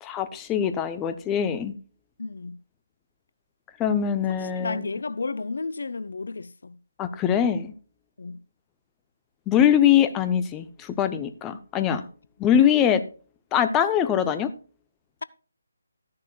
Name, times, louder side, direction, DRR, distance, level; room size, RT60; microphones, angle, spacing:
voice 1, 0.0-1.7 3.8-4.9 7.0-7.7 9.5-12.0 12.4-13.0 13.5-14.5, left 9 dB, 15° left, 0.6 m, -22 dB
voice 2, 2.2-2.6 4.4-6.8 8.2-8.4, left 3 dB, 60° left, 0.5 m, -32 dB
13.5 x 10.5 x 2.3 m
figure-of-eight pair, 150°, 0 cm